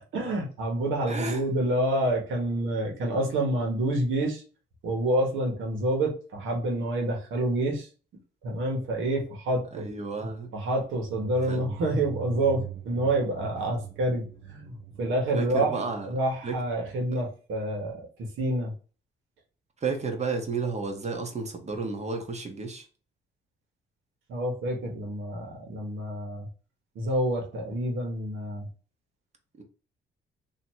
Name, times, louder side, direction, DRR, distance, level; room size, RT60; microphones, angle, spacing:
voice 1, 0.1-4.4 4.8-7.9 8.4-9.8 10.5-14.2 14.5-15.8 16.1-18.1 18.4-18.7 24.3-26.5 26.9-28.7, right 1 dB, 80° right, 1 dB, 1.4 m, -28 dB
voice 2, 1.1-1.4 9.7-10.5 11.5-11.6 15.3-16.1 16.4-16.6 17.1-17.2 19.8-22.9 29.6-29.7, right 4 dB, 35° right, 4 dB, 1.0 m, -32 dB
sound 1, 11.1-16.8, right 13 dB, 60° right, 0.6 m, -42 dB
3.0 x 2.8 x 4.5 m, 0.37 s
cardioid pair, 90°, 20 cm